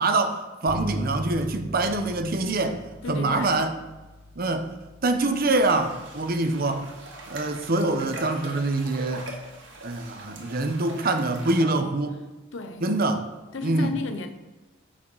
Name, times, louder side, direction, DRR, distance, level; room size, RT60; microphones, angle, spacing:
voice 1, 0.0-2.8 3.1-3.7 4.4-4.7 5.0-6.9 7.3-9.3 9.8-12.2 12.8-13.2 13.6-13.9, right 2 dB, 50° right, 7 dB, 0.8 m, -25 dB
Bass guitar, 0.7-10.3, equal, 85° right, 1.7 m, -41 dB
voice 2, 3.0-3.5 12.5-12.9 13.5-14.3, left 3 dB, 70° left, 8 dB, 0.8 m, -33 dB
sound 1, 5.4-11.6, right 2 dB, 70° right, 1.7 m, -42 dB
7.5 x 5.0 x 5.4 m, 1.2 s
head